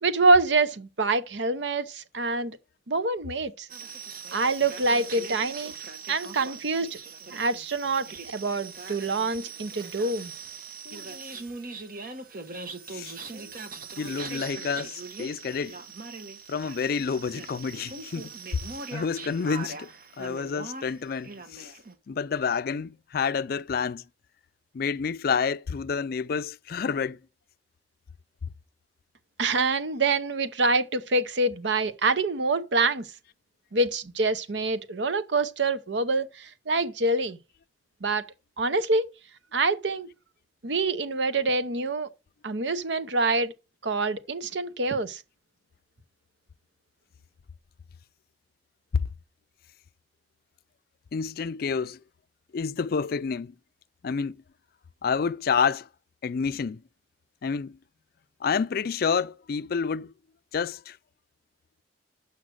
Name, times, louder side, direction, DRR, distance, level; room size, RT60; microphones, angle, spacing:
voice 1, 0.0-2.6 2.9-3.7 4.3-5.7 6.1-7.0 7.3-10.3 29.4-33.1 33.7-37.4 38.0-38.3 38.6-39.1 39.5-40.1 40.6-42.1 42.4-43.5 43.8-45.2, right 3 dB, 80° right, 0.8 m, -26 dB
sound 1, 3.7-21.9, right 4 dB, 50° right, 1.2 m, -41 dB
voice 2, 14.0-15.8 16.5-18.3 18.9-19.9 20.2-21.7 22.1-24.0 24.7-27.2 51.1-52.0 52.5-53.5 54.0-54.4 55.0-55.9 56.2-56.8 57.4-57.8 58.4-60.1 60.5-61.0, left 6 dB, 55° left, 0.4 m, -29 dB
7.3 x 5.7 x 6.3 m
head